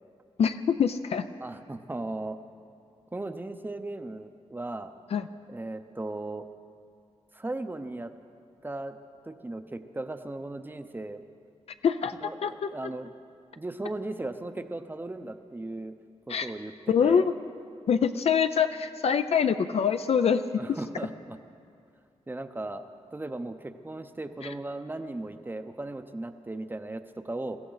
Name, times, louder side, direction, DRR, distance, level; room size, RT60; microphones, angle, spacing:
voice 1, 0.4-1.3 5.1-5.3 11.8-12.1 12.4-12.7 16.3-16.5 16.9-17.3 17.9-20.6 24.4-24.5, left 7 dB, 60° left, 10 dB, 0.4 m, -24 dB
voice 2, 1.4-2.4 3.1-4.9 5.5-6.5 7.3-8.1 8.6-9.0 9.2-11.2 12.2-13.1 13.6-15.9 16.3-17.3 20.5-21.4 22.3-22.8 23.1-27.6, right 2 dB, 15° right, 9 dB, 0.6 m, -37 dB
22.5 x 15.0 x 4.0 m, 2.4 s
wide cardioid pair, 130°, 12 cm